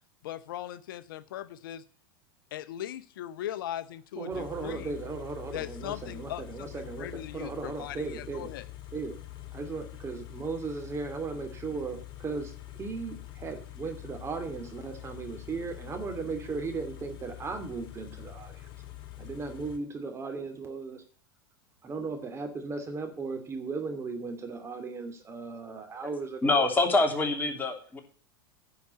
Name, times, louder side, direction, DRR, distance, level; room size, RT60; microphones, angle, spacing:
voice 1, 0.2-1.8 2.5-5.0 5.5-8.6, left 12 dB, 70° left, 13 dB, 0.7 m, -39 dB
voice 2, 4.2-7.1 7.3-8.5 8.9-9.2 9.5-12.5 12.8-18.7 19.2-21.0 21.8-26.6, right 4 dB, 25° right, 6 dB, 2.5 m, -36 dB
Car / Idling, 4.3-19.8, left 14 dB, 45° left, 2.4 m, -45 dB
voice 3, 26.4-28.0, left 3 dB, 15° left, 3 dB, 3.0 m, -25 dB
10.5 x 5.8 x 8.2 m, 0.43 s
hypercardioid pair, 100°, 12 cm